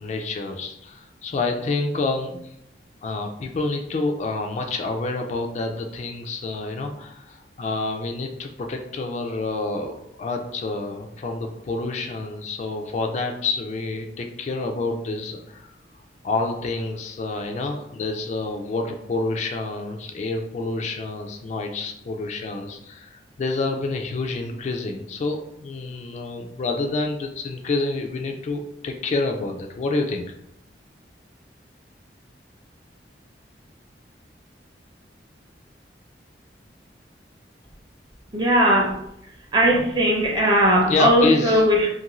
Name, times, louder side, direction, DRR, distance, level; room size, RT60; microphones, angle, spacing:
voice 1, 0.0-2.5 3.0-15.7 16.2-30.2 40.9-41.7, left 3 dB, 40° left, 3 dB, 0.3 m, -28 dB
voice 2, 38.3-39.0 39.5-41.9, equal, 25° right, -1 dB, 0.6 m, -18 dB
2.6 x 2.5 x 2.9 m, 0.79 s
head